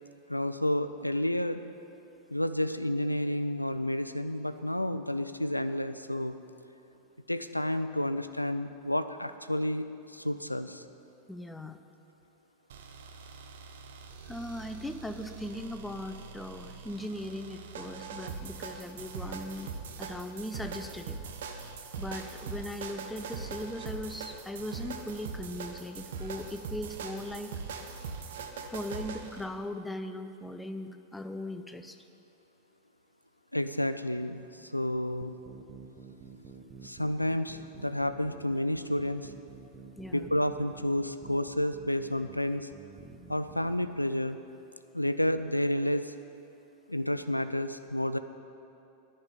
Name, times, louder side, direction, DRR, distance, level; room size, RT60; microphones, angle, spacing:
voice 1, 0.3-1.6 2.3-6.4 7.3-10.8 33.5-35.3 36.8-39.3 40.1-42.7 43.3-44.4 44.9-46.1 46.9-48.2, left 1 dB, 85° left, 11 dB, 0.3 m, -30 dB
voice 2, 11.3-11.8 14.3-21.2 22.0-27.5 28.7-32.0 40.0-40.3, left 1 dB, 5° left, 8 dB, 0.5 m, -39 dB
sound 1, 12.7-29.5, right 5 dB, 60° right, 0.8 m, -42 dB
sound 2, 35.2-43.9, right 4 dB, 25° right, 0.9 m, -50 dB
10.5 x 5.6 x 8.3 m, 2.8 s
figure-of-eight pair, 90°, 0 cm